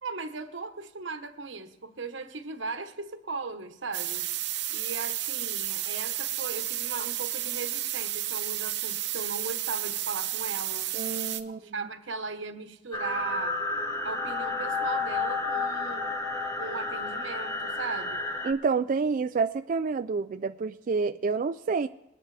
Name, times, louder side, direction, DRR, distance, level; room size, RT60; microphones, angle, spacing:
voice 1, 0.0-4.3 4.7-10.9 11.4-13.6 14.0-16.1 16.6-18.2, right 4 dB, 90° right, 1.2 m, -38 dB
sound 1, 3.9-11.4, right 13 dB, 65° right, 0.8 m, -32 dB
voice 2, 10.9-11.7 18.4-21.9, right 4 dB, 45° right, 0.4 m, -28 dB
sound 2, 12.9-18.5, left 3 dB, 20° left, 1.3 m, -31 dB
21.5 x 9.8 x 3.3 m
head